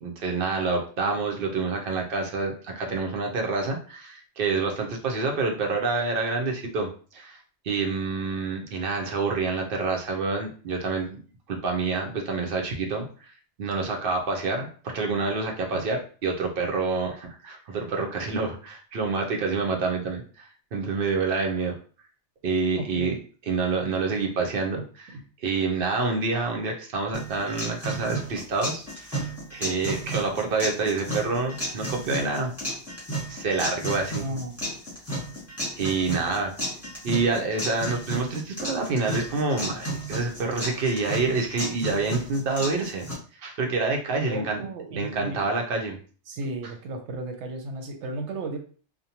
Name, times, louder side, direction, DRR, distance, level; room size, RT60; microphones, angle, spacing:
voice 1, 0.0-7.4 7.6-11.2 11.5-13.1 13.6-21.8 22.4-23.1 23.5-25.1 25.4-32.5 33.3-34.3 35.8-36.5 37.0-43.0 43.3-44.6 44.9-46.0, right 4 dB, 60° right, 2 dB, 0.7 m, -27 dB
voice 2, 22.8-23.2 24.8-24.9 25.1-25.2 34.1-34.7 44.1-45.4 46.3-48.6, right 2 dB, 80° right, 5 dB, 0.9 m, -34 dB
sound 1, 27.1-43.1, right 1 dB, 15° left, 1.1 m, -33 dB
2.5 x 2.1 x 2.8 m, 0.40 s
omnidirectional pair, 1.2 m